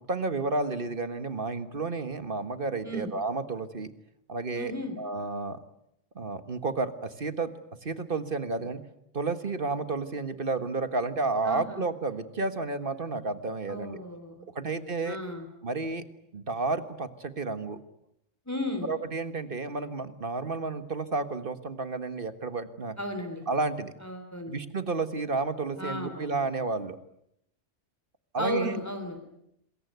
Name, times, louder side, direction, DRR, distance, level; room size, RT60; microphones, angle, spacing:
voice 1, 0.0-3.9 4.3-5.6 6.2-7.5 7.8-8.8 9.1-14.0 14.6-15.2 15.6-16.0 16.3-17.8 18.8-23.0 23.5-23.9 24.5-27.0 28.3-28.7, right 3 dB, 45° right, 11 dB, 1.7 m, -31 dB
voice 2, 4.5-5.0 11.4-11.8 13.7-14.8 15.0-15.5 18.5-18.9 23.0-23.4 24.0-24.5 25.8-26.4 28.4-29.2, left 1 dB, 15° left, 6 dB, 3.4 m, -34 dB
27.0 x 22.0 x 9.4 m, 0.77 s
omnidirectional pair, 1.3 m